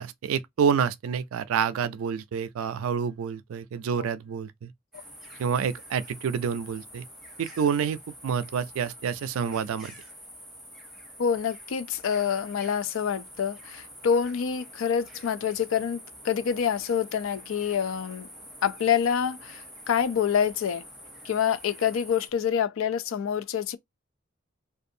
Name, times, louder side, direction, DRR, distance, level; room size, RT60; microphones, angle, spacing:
voice 1, 0.0-4.7 5.4-7.1 7.4-9.9, right 7 dB, 80° right, 0.3 m, -28 dB
sound 1, 4.9-22.3, equal, ahead, 0.8 m, -47 dB
voice 2, 11.2-18.3 18.6-20.8 21.2-23.8, left 7 dB, 70° left, 0.4 m, -27 dB
2.6 x 2.3 x 2.6 m
head